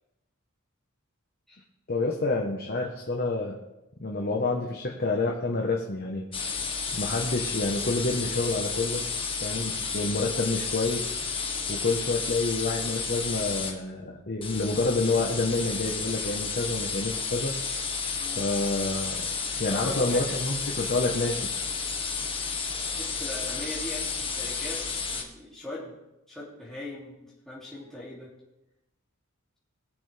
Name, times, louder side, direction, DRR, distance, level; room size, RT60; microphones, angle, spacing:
voice 1, 1.9-3.6 4.0-6.3 6.9-9.1 9.4-11.1 11.7-17.5 18.4-19.2 19.6-21.5, left 3 dB, 45° left, 0 dB, 1.2 m, -28 dB
sound 1, 6.3-13.7 14.4-25.2, left 5 dB, 25° left, 1.4 m, -32 dB
voice 2, 18.1-18.5 19.7-20.4 23.0-25.9 26.3-28.3, left 1 dB, ahead, -8 dB, 2.7 m, -40 dB
20.5 x 6.9 x 3.4 m, 0.95 s
head